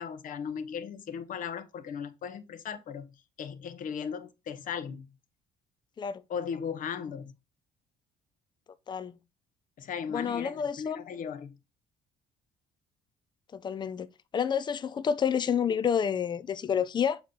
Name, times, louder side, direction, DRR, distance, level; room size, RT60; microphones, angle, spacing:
voice 1, 0.0-3.1 3.4-5.1 6.3-7.3 9.8-11.5, left 7 dB, 50° left, 0.8 m, -37 dB
voice 2, 8.9-9.2 10.1-11.0 13.5-14.1 14.3-17.2, left 7 dB, 25° left, 0.4 m, -29 dB
7.2 x 3.9 x 3.7 m
cardioid pair, 110°, 17 cm